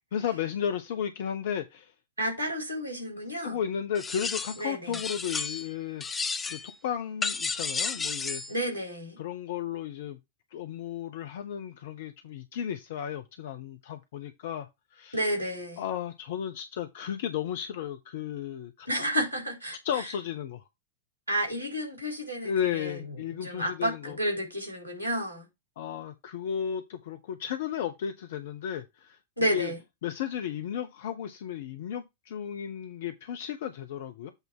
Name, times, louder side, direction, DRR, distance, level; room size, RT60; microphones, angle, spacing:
voice 1, 0.1-1.9 3.4-6.2 6.5-8.4 9.2-10.2 10.5-15.2 15.8-18.9 19.8-20.6 22.4-24.2 25.8-29.2 29.5-29.7 30.0-34.3, left 9 dB, 55° left, 0.7 m, -34 dB
voice 2, 2.2-3.6 4.6-5.0 8.5-9.2 15.1-15.8 18.9-19.8 21.3-23.0 23.4-25.4 29.4-29.8, equal, 90° left, 3.6 m, -31 dB
sound 1, 3.9-4.6 4.9-5.7 6.0-6.7 7.2-8.5, left 4 dB, 15° left, 0.7 m, -32 dB
8.1 x 3.5 x 5.8 m
figure-of-eight pair, 90°, 0 cm